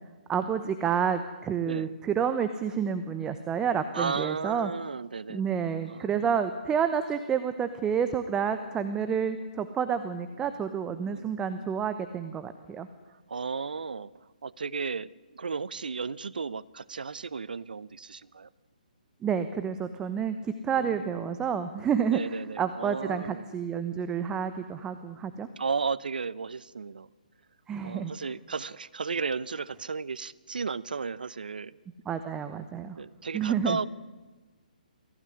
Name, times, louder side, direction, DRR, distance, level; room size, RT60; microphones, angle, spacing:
voice 1, 0.3-4.7 5.3-12.9 19.2-25.5 27.7-28.1 32.1-33.0 33.3-33.8, right 7 dB, 15° right, 10 dB, 1.0 m, -29 dB
voice 2, 3.9-6.3 11.1-11.3 13.3-18.5 20.8-21.1 22.1-23.5 25.6-27.1 27.8-31.8 33.0-33.9, right 5 dB, 75° right, 20 dB, 0.9 m, -34 dB
23.5 x 16.0 x 9.9 m, 1.2 s
hypercardioid pair, 145°, 5 cm